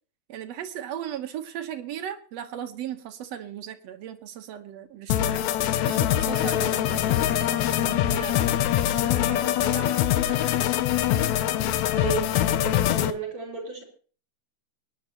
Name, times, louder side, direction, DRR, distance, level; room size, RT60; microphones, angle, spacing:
voice 1, 0.3-5.3 5.8-10.7, right 10 dB, 65° right, 7 dB, 2.0 m, -37 dB
sound 1, 5.1-13.1, left 12 dB, 75° left, 1.9 m, -23 dB
voice 2, 12.0-13.8, right 7 dB, 45° right, 1 dB, 5.2 m, -34 dB
24.5 x 10.5 x 2.9 m, 0.41 s
omnidirectional pair, 3.4 m